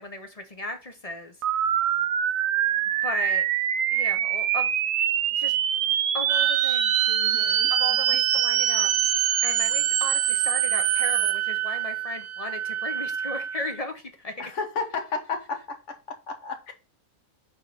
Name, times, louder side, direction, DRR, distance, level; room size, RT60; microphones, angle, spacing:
voice 1, 0.0-1.4 3.0-3.5 3.9-4.7 5.4-5.6 6.1-7.1 7.7-8.9 9.4-14.5, left 1 dB, 35° left, 0.7 m, -35 dB
sound 1, 1.4-11.3, right 10 dB, 70° right, 1.0 m, -24 dB
sound 2, 6.3-13.8, right 11 dB, 50° right, 0.9 m, -28 dB
voice 2, 7.1-7.7 8.1-8.2 14.4-16.7, left 4 dB, 60° left, 1.4 m, -33 dB
5.7 x 3.6 x 5.6 m
omnidirectional pair, 1.5 m